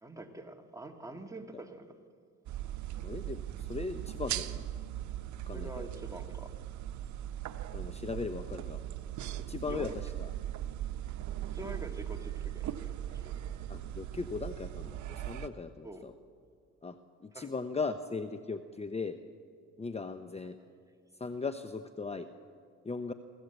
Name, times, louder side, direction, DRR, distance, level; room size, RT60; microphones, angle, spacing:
voice 1, 0.0-2.0 5.5-6.5 9.6-10.1 11.5-13.4 15.8-16.1 17.3-17.5 20.4-20.5, right 1 dB, 10° right, 3 dB, 1.9 m, -46 dB
sound 1, 2.5-15.5, right 12 dB, 70° right, 0.9 m, -39 dB
voice 2, 3.0-4.7 5.5-5.9 7.7-8.8 9.5-10.3 13.7-16.1 16.8-19.2 19.8-20.6 21.2-22.3 22.8-23.1, left 4 dB, 20° left, 9 dB, 0.8 m, -38 dB
23.0 x 15.0 x 8.1 m, 2.1 s
cardioid pair, 90°, 30 cm